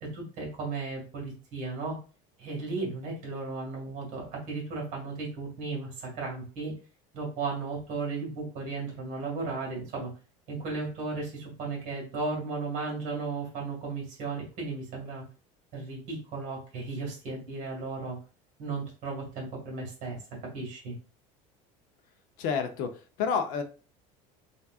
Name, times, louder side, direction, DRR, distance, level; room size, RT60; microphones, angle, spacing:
voice 1, 0.0-2.0 2.4-6.7 7.1-10.1 10.5-15.2 15.7-18.2 18.6-20.2 20.5-20.9, right 3 dB, 50° right, -2 dB, 1.9 m, -35 dB
voice 2, 22.4-23.6, left 6 dB, 55° left, 6 dB, 0.8 m, -29 dB
4.1 x 3.6 x 2.4 m, 0.36 s
cardioid pair, 175°, 17 cm